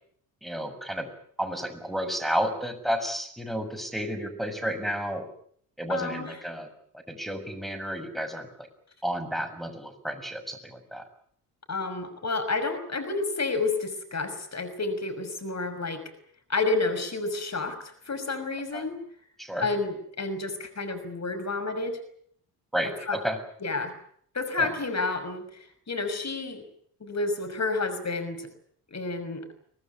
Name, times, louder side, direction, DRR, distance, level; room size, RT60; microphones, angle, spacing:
voice 1, 0.4-1.1 1.4-5.3 5.8-6.7 7.1-8.7 9.0-11.0 18.7-18.8 19.4-19.7 22.7-23.4 24.6-24.7, equal, ahead, 6 dB, 6.6 m, -31 dB
voice 2, 5.9-6.4 11.7-16.0 16.5-17.8 18.1-19.0 19.6-22.0 23.1-23.2 23.6-23.9 24.3-26.6 27.0-28.5 28.9-29.4, left 3 dB, 35° left, 9 dB, 6.1 m, -30 dB
24.5 x 18.5 x 9.7 m, 0.64 s
figure-of-eight pair, 45°, 47 cm